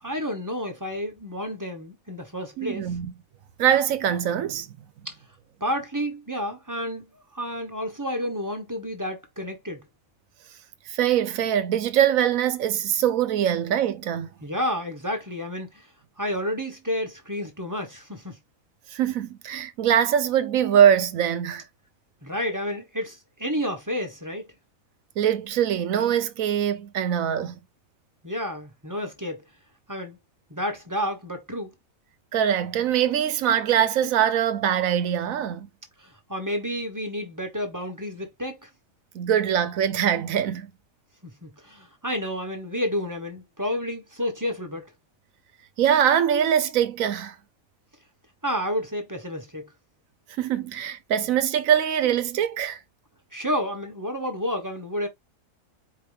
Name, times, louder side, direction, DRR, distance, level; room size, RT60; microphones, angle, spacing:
voice 1, 0.0-2.9 5.0-5.2 5.6-7.0 7.3-9.9 14.4-15.9 16.2-18.4 22.2-24.5 28.2-29.4 29.9-30.2 30.5-31.7 36.0-38.7 41.2-44.9 48.4-49.7 53.3-55.1, equal, 15° right, 1.1 m, -30 dB
voice 2, 2.6-3.1 3.6-4.7 10.9-14.3 18.9-21.6 25.2-27.6 32.3-35.7 39.1-40.7 45.8-47.3 50.4-52.8, right 9 dB, 80° right, 1.1 m, -23 dB
4.8 x 2.8 x 3.4 m
omnidirectional pair, 1.4 m